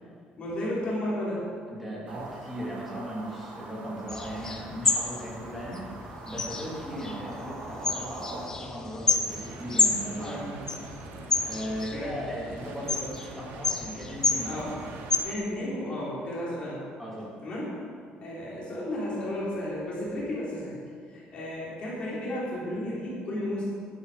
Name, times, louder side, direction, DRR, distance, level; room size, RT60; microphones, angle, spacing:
voice 1, 0.4-1.5 10.2-10.6 11.9-12.2 14.4-14.7 15.2-16.8 17.4-17.7 18.2-20.7 21.1-23.6, left 1 dB, 35° left, -7 dB, 3.7 m, -33 dB
voice 2, 1.7-5.9 6.3-10.6 11.4-14.6 17.0-17.3, equal, ahead, -7 dB, 3.1 m, -37 dB
sound 1, 2.1-8.5, right 3 dB, 65° right, 2.0 m, -43 dB
sound 2, 4.1-15.2, left 4 dB, 20° left, 0.7 m, -31 dB
sound 3, 9.3-15.4, right 5 dB, 80° right, 1.1 m, -45 dB
12.0 x 11.0 x 5.1 m, 2.2 s
cardioid pair, 175°, 3 cm